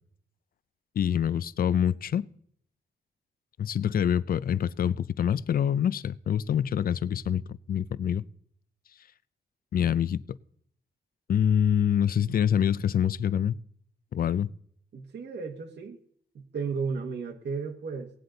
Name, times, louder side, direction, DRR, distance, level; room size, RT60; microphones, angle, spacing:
voice 1, 1.0-2.3 3.6-8.2 9.7-10.4 11.3-13.6 14.1-14.5, left 9 dB, 55° left, 0.4 m, -26 dB
voice 2, 14.9-16.0 16.3-18.1, right 5 dB, 70° right, 1.2 m, -34 dB
17.5 x 9.4 x 3.9 m
wide cardioid pair, 175°, 18 cm